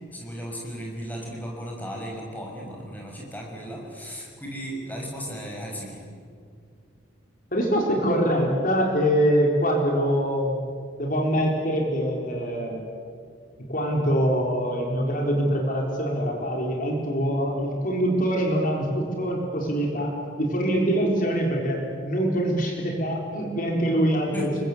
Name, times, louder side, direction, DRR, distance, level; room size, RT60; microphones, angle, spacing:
voice 1, 0.1-6.0 24.3-24.5, equal, 10° left, -1 dB, 6.1 m, -35 dB
voice 2, 7.5-10.6 11.0-12.9 13.7-24.5, equal, 45° left, 0 dB, 4.3 m, -24 dB
29.5 x 23.5 x 8.1 m, 2.1 s
head